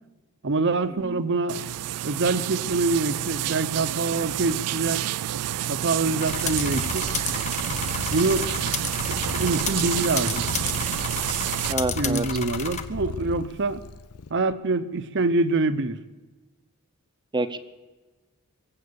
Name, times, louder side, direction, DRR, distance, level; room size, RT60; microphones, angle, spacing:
voice 1, 0.4-1.6 2.0-5.0 5.7-7.1 8.1-8.5 9.4-10.5 11.9-13.8 14.3-16.0, right 3 dB, 55° right, 13 dB, 0.8 m, -25 dB
sound 1, 1.5-11.7, right 12 dB, 90° right, 0.4 m, -29 dB
Purr, 6.2-14.3, left 5 dB, 85° left, 0.6 m, -37 dB
sound 2, 6.2-12.8, left 6 dB, 30° left, 1.0 m, -32 dB
voice 2, 11.7-12.3 17.3-17.6, right 2 dB, 20° right, 11 dB, 0.7 m, -27 dB
23.0 x 7.8 x 7.0 m, 1.2 s
head